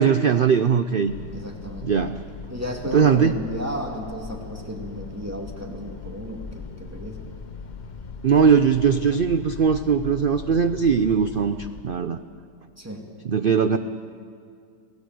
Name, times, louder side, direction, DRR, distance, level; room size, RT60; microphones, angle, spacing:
voice 1, 0.0-1.1 1.8-2.2 2.9-3.4 8.2-11.6 11.8-12.2 13.3-13.8, right 6 dB, 85° right, 10 dB, 0.4 m, -20 dB
sound 1, 1.1-11.8, left 5 dB, 35° left, 0.8 m, -39 dB
voice 2, 1.3-1.9 2.5-7.2 12.8-13.0, equal, 10° right, 1 dB, 2.4 m, -34 dB
26.5 x 16.5 x 7.7 m, 2.3 s
omnidirectional pair, 1.8 m